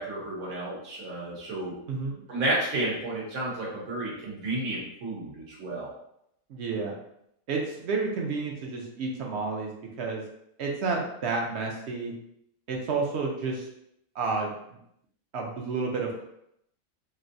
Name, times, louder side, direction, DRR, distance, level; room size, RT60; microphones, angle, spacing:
voice 1, 0.0-1.7 2.3-5.9, right 1 dB, 90° right, -5 dB, 1.4 m, -31 dB
voice 2, 1.9-2.2 6.5-6.9 7.5-9.7 10.0-10.2 10.6-12.1 12.7-13.7 14.1-14.5 15.3-16.2, right 4 dB, 65° right, 0 dB, 0.7 m, -30 dB
3.1 x 2.6 x 2.6 m, 0.76 s
omnidirectional pair, 1.4 m